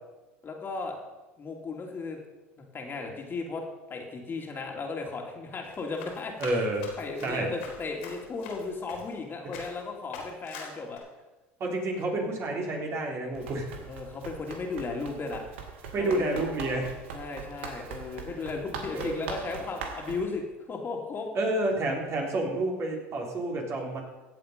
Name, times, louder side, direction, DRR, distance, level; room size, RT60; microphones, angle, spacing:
voice 1, 0.4-1.0 1.4-2.2 2.6-3.6 3.9-6.3 7.0-11.0 13.9-15.4 16.0-16.4 17.1-20.4 20.7-21.3, left 4 dB, 35° left, 1 dB, 2.7 m, -35 dB
Run, 5.6-9.2 9.5-9.8 10.1-11.0, left 5 dB, 80° left, 4.1 m, -44 dB
voice 2, 6.4-6.9 7.2-7.5 11.6-13.7 15.9-16.9 18.9-19.3 21.3-24.0, right 2 dB, 45° right, 0 dB, 3.8 m, -29 dB
Run 2, 13.3-20.2, right 5 dB, 85° right, 1.9 m, -41 dB
16.0 x 7.8 x 5.3 m, 1.1 s
hypercardioid pair, 85°, 6 cm